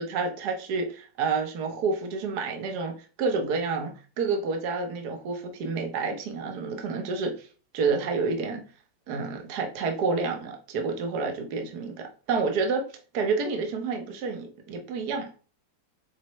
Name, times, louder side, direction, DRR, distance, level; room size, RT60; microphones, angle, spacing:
voice 1, 0.0-7.5 7.7-8.6 9.1-12.9 13.1-15.3, right 4 dB, 60° right, 3 dB, 1.5 m, -29 dB
7.4 x 4.2 x 3.1 m, 0.37 s
omnidirectional pair, 2.0 m